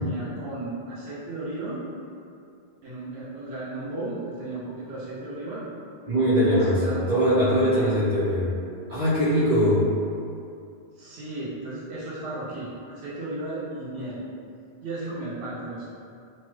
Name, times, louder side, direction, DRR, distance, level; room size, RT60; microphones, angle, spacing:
voice 1, 0.0-1.8 2.8-5.7 6.4-8.0 11.0-14.2 14.8-15.9, right 2 dB, 85° right, -8 dB, 0.9 m, -34 dB
voice 2, 6.1-8.5 8.9-9.9, equal, 45° right, -12 dB, 0.7 m, -21 dB
3.0 x 2.1 x 3.0 m, 2.4 s
omnidirectional pair, 1.0 m